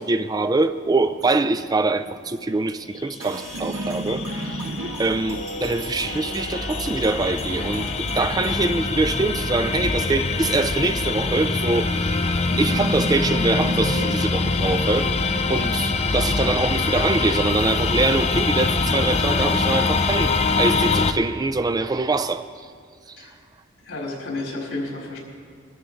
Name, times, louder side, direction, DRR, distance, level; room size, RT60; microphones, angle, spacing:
voice 1, 0.0-4.7 5.0-12.1 12.6-22.7 23.1-23.3, right 3 dB, 20° right, 11 dB, 0.3 m, -24 dB
sound 1, 1.0-9.1 12.5-18.2, right 1 dB, 55° right, 0.7 m, -36 dB
sound 2, 3.2-8.8, right 2 dB, 85° right, 1.7 m, -38 dB
sound 3, 3.4-21.1, left 3 dB, 30° left, 0.6 m, -24 dB
voice 2, 23.8-25.2, left 2 dB, 80° left, -4 dB, 4.6 m, -31 dB
22.5 x 13.0 x 3.8 m, 2.1 s
head